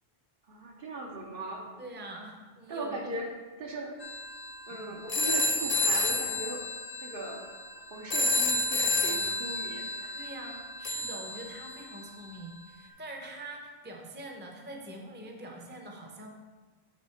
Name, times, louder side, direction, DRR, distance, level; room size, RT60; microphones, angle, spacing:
voice 1, 0.5-1.7 2.7-3.3 3.6-4.0 4.7-6.7 7.0-7.5 7.9-10.3, right 2 dB, 65° right, 0 dB, 1.1 m, -39 dB
voice 2, 1.8-3.1 4.7-5.0 10.1-16.3, right 1 dB, 10° right, 1 dB, 0.7 m, -44 dB
sound 1, 4.0-12.1, left 2 dB, 45° left, 0.7 m, -31 dB
6.6 x 3.6 x 5.7 m, 1.3 s
omnidirectional pair, 1.0 m